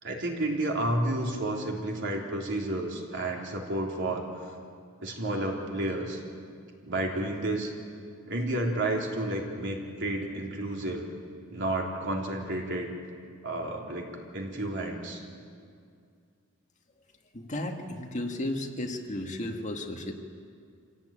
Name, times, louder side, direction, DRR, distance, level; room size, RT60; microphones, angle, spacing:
voice 1, 0.0-4.2 5.0-6.2 6.8-7.7 8.3-11.0 11.5-12.9 13.4-15.2, right 1 dB, 60° right, 0 dB, 3.5 m, -31 dB
voice 2, 17.3-20.1, left 1 dB, 35° left, 2 dB, 1.9 m, -34 dB
26.5 x 17.0 x 9.0 m, 2.3 s
head